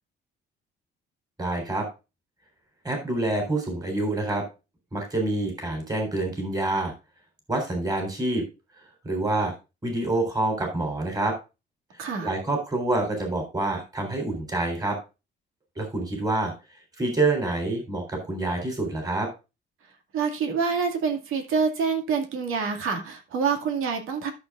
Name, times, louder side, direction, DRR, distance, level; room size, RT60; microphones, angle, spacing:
voice 1, 1.4-1.9 2.8-4.4 4.9-6.9 7.5-8.4 9.0-9.5 9.8-11.4 12.2-15.0 15.8-16.5 17.0-19.3, right 2 dB, 20° right, 3.7 m, -27 dB
voice 2, 12.0-12.3 20.1-24.3, right 5 dB, 90° right, 2.1 m, -26 dB
13.5 x 7.1 x 2.4 m
cardioid pair, 140°, 21 cm